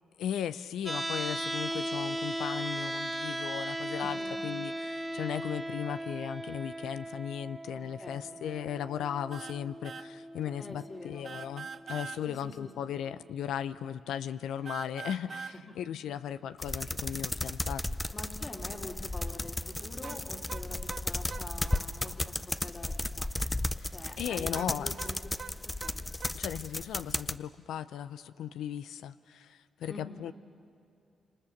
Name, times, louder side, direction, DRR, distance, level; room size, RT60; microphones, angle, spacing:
voice 1, 0.2-4.2 4.4-17.8 23.8-23.9 24.2-24.9 26.3-30.3, left 9 dB, 80° left, 14 dB, 0.5 m, -37 dB
sound 1, 0.9-12.9, right 1 dB, 10° right, 0.9 m, -38 dB
voice 2, 4.0-4.4 8.0-8.4 10.6-11.3 12.3-12.7 13.1-13.2 15.3-15.8 18.1-23.3 23.9-25.2 25.8-26.1 29.9-30.3, left 2 dB, 35° left, 1 dB, 4.0 m, -46 dB
sound 2, 9.3-9.6 9.8-10.1 11.2-12.2 14.7-15.6 20.0-21.9 24.5-26.4, right 6 dB, 60° right, 0.8 m, -43 dB
sound 3, 16.6-27.4, left 1 dB, 15° left, 0.7 m, -35 dB
27.0 x 26.0 x 7.2 m, 2.5 s
supercardioid pair, 55°, 0 cm